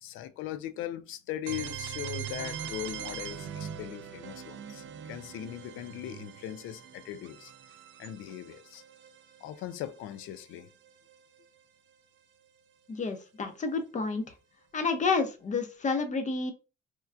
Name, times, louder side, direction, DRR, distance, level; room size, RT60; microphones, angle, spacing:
voice 1, 0.0-7.5 8.0-8.8 9.4-10.7, left 12 dB, 90° left, 0.4 m, -39 dB
sound 1, 1.5-11.2, right 9 dB, 70° right, 0.5 m, -42 dB
voice 2, 12.9-14.3 14.7-16.5, left 4 dB, 40° left, 0.7 m, -30 dB
4.4 x 2.2 x 2.4 m
cardioid pair, 90°, 20 cm